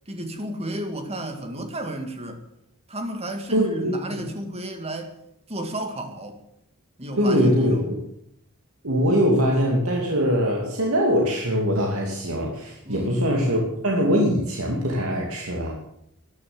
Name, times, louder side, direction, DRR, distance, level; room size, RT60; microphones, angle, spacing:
voice 1, 0.1-2.4 2.9-5.1 5.5-6.4 7.0-8.0 12.8-13.2, right 1 dB, 30° right, 6 dB, 2.1 m, -32 dB
voice 2, 3.5-3.9 7.2-8.0 8.8-15.7, equal, 70° right, -1 dB, 2.6 m, -22 dB
13.5 x 11.0 x 7.9 m, 0.75 s
head